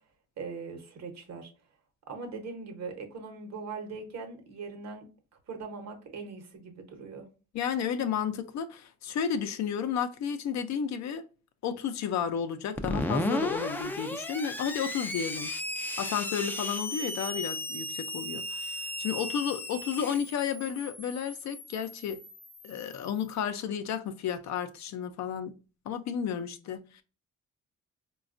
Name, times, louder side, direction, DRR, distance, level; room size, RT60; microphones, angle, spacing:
voice 1, 0.4-1.5 2.1-5.0 5.5-7.3, right 4 dB, 60° right, 0.9 m, -40 dB
voice 2, 7.5-11.2 11.6-15.5 16.0-22.2 22.6-25.5 25.9-27.0, left 7 dB, 65° left, 0.5 m, -32 dB
Screech, 12.8-23.2, left 1 dB, 5° left, 0.3 m, -35 dB
4.1 x 2.3 x 2.5 m
cardioid pair, 90°, 30 cm